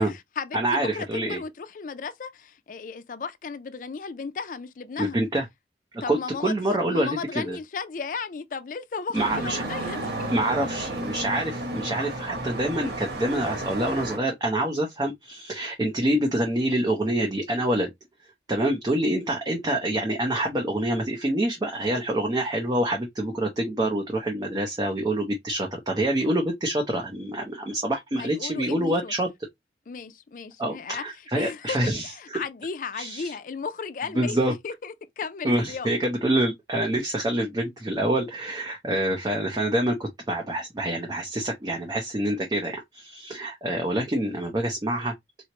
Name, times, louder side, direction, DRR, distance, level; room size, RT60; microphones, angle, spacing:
voice 1, 0.0-5.2 6.0-10.3 28.2-29.1 29.9-31.0 31.3-35.9, left 5 dB, 50° left, 0.4 m, -35 dB
voice 2, 0.5-1.4 5.0-5.4 5.9-7.6 9.1-9.6 10.3-17.9 18.5-29.3 30.6-32.4 32.9-33.3 34.2-34.5 35.4-45.1, right 1 dB, 20° right, 0.6 m, -26 dB
sound 1, 9.1-14.2, right 2 dB, 65° right, 1.2 m, -32 dB
4.4 x 2.0 x 2.8 m
head